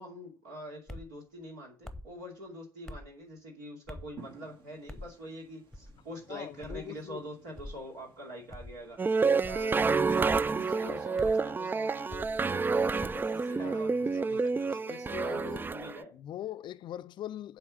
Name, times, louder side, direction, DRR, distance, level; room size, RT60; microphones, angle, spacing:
voice 1, 0.0-16.1, equal, 75° right, 2.6 m, -45 dB
sound 1, 0.9-1.1 1.8-2.1 2.9-3.1 3.9-4.2 4.9-5.1 5.7-6.0 6.6-6.9 7.6-7.8 8.5-8.8 9.4-9.7 10.2-10.5 11.2-11.4 12.1-12.4 13.0-13.3, left 1 dB, 5° left, 1.0 m, -44 dB
sound 2, 4.2-10.0, right 4 dB, 50° right, 1.6 m, -57 dB
voice 2, 6.3-7.3 13.6-15.7 16.1-17.6, left 12 dB, 50° left, 0.4 m, -42 dB
sound 3, 9.0-16.0, right 4 dB, 20° right, 0.3 m, -29 dB
7.8 x 4.8 x 7.3 m
figure-of-eight pair, 50°, 10 cm